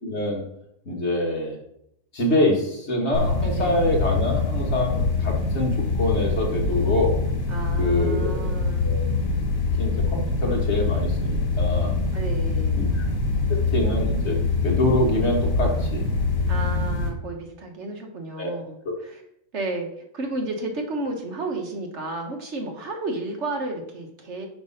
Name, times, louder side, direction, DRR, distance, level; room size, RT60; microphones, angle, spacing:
voice 1, 0.0-0.4 0.9-1.6 2.1-7.2 7.8-8.5 8.8-9.0 9.8-12.0 12.7-13.0 13.5-14.4 14.6-16.0 18.4-18.5, left 1 dB, 55° left, 0 dB, 1.9 m, -25 dB
sound 1, 3.1-17.1, left 3 dB, 75° left, 2.0 m, -24 dB
voice 2, 7.5-9.0 12.1-12.8 16.5-19.2 19.5-24.5, right 2 dB, 60° right, 3 dB, 1.3 m, -32 dB
6.0 x 5.2 x 5.4 m, 0.75 s
omnidirectional pair, 1.4 m